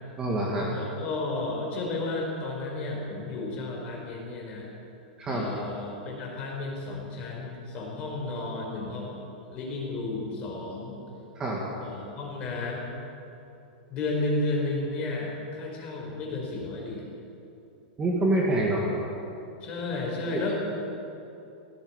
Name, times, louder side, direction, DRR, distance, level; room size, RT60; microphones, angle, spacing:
voice 1, 0.2-0.7 5.2-5.5 11.4-11.6 18.0-18.9 20.3-20.4, right 1 dB, 15° right, -3 dB, 2.1 m, -26 dB
voice 2, 0.7-4.7 5.3-9.1 9.5-11.0 11.8-12.8 13.9-17.0 19.6-20.5, left 2 dB, 25° left, -2 dB, 5.0 m, -32 dB
18.0 x 16.0 x 9.0 m, 2.8 s
supercardioid pair, 175°, 5 cm